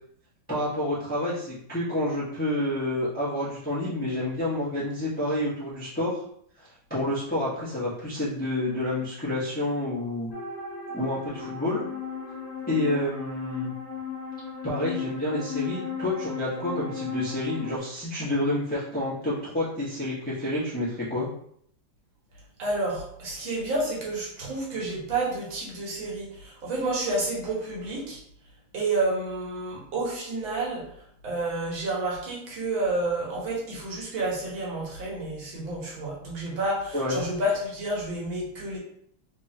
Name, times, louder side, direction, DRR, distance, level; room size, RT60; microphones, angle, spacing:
voice 1, 0.5-6.2 6.6-10.3 10.9-11.8 12.7-13.7 14.6-21.3 36.9-37.2, left 1 dB, 5° left, -9 dB, 0.8 m, -29 dB
sound 1, 10.3-17.8, left 6 dB, 45° left, 1.1 m, -35 dB
voice 2, 22.6-28.2 28.7-30.9 31.2-38.8, right 2 dB, 70° right, -3 dB, 1.8 m, -30 dB
3.5 x 3.3 x 2.8 m, 0.66 s
omnidirectional pair, 2.3 m